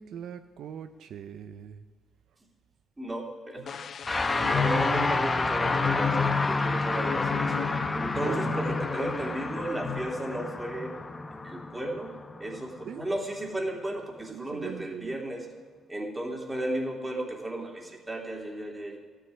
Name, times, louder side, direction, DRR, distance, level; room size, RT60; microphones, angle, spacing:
voice 1, 0.0-1.8 4.4-5.0 8.1-8.6 12.8-13.0 14.3-15.2, right 8 dB, 75° right, 10 dB, 0.5 m, -41 dB
voice 2, 3.0-3.8 4.4-11.0 11.4-15.5 15.9-19.0, right 1 dB, 15° right, 1 dB, 2.7 m, -34 dB
sound 1, 3.7-9.4 9.7-10.0, left 7 dB, 55° left, 0.6 m, -34 dB
sound 2, 4.0-13.5, left 3 dB, 25° left, 0.9 m, -30 dB
13.0 x 7.5 x 9.7 m, 1.5 s
cardioid pair, 90°, 0 cm